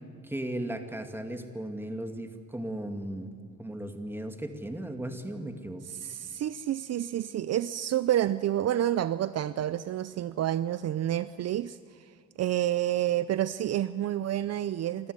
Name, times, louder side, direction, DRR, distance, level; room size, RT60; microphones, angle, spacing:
voice 1, 0.2-5.8, right 1 dB, 5° right, 5 dB, 2.3 m, -36 dB
voice 2, 5.9-11.8 12.4-15.1, right 12 dB, 55° right, 15 dB, 0.6 m, -29 dB
25.5 x 13.5 x 9.7 m, 2.4 s
cardioid pair, 90°, 30 cm